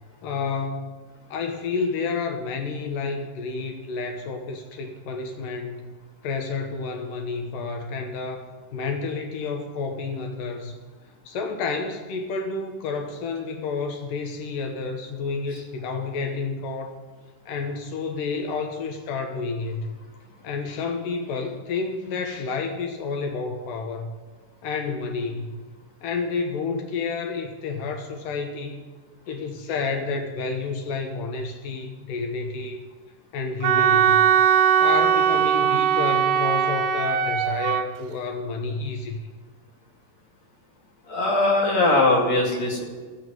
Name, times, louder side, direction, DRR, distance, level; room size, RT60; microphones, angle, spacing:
voice 1, 0.2-1.1 1.3-5.9 6.2-8.5 8.7-10.7 11.3-17.0 17.5-19.9 20.4-24.1 24.6-25.6 26.0-28.8 29.3-32.8 33.3-34.3 34.8-39.2, left 4 dB, 80° left, 4 dB, 2.8 m, -30 dB
Wind instrument woodwind instrument, 33.6-37.9, right 8 dB, 75° right, 1.9 m, -20 dB
voice 2, 41.1-42.8, left 2 dB, 55° left, -1 dB, 3.6 m, -20 dB
14.0 x 8.4 x 9.2 m, 1.4 s
omnidirectional pair, 3.8 m